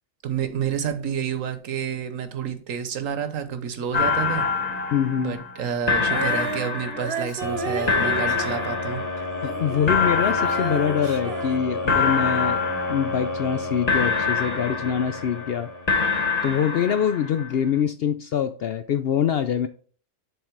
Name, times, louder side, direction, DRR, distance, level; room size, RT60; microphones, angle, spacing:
voice 1, 0.2-4.5 5.2-9.0, right 7 dB, 75° right, 1.3 m, -29 dB
sound 1, 3.9-5.6 5.9-7.5 7.9-9.5 9.9-11.6 11.9-13.6 13.9-15.5 15.9-17.5, left 5 dB, 30° left, 1.2 m, -26 dB
voice 2, 4.9-5.4 9.4-12.6 12.9-15.7 16.4-19.7, left 8 dB, 65° left, 0.6 m, -24 dB
Female singing, 6.0-9.9 10.2-12.3, right 4 dB, 50° right, 1.2 m, -33 dB
sound 2, 7.4-16.3, left 2 dB, 15° left, 1.4 m, -32 dB
6.9 x 3.8 x 6.0 m
omnidirectional pair, 1.4 m